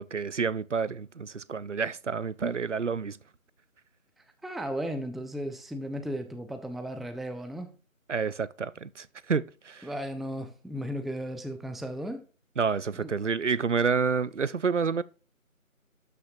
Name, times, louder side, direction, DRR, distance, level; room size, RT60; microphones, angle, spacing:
voice 1, 0.0-3.2 8.1-9.9 12.6-15.0, right 5 dB, 60° right, 0.5 m, -29 dB
voice 2, 4.4-7.7 9.8-12.2 13.0-13.1, equal, ahead, 0.5 m, -35 dB
12.0 x 5.8 x 2.6 m
figure-of-eight pair, 175°, 42 cm